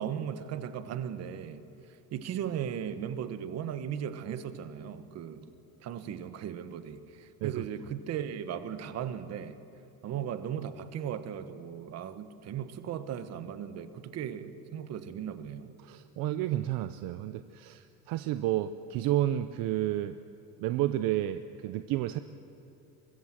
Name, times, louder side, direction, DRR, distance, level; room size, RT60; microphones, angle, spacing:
voice 1, 0.0-1.7 2.1-5.5 5.8-9.6 10.0-15.7, right 9 dB, 45° right, 11 dB, 1.3 m, -37 dB
voice 2, 15.8-20.2 20.6-22.2, right 13 dB, 65° right, 11 dB, 0.8 m, -31 dB
24.0 x 21.0 x 7.5 m, 2.8 s
cardioid pair, 160°, 37 cm